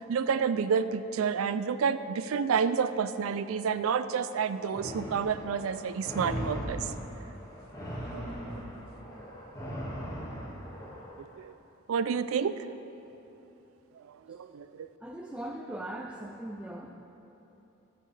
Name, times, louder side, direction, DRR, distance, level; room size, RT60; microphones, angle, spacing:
voice 1, 0.0-6.9 8.1-8.6 11.2-11.5 11.9-12.7 14.3-14.9, right 6 dB, 80° right, 13 dB, 0.4 m, -29 dB
sound 1, 4.7-11.2, equal, 20° left, 1.7 m, -39 dB
voice 2, 15.0-16.9, right 1 dB, 5° right, 1 dB, 0.3 m, -39 dB
16.5 x 7.7 x 3.3 m, 3.0 s
head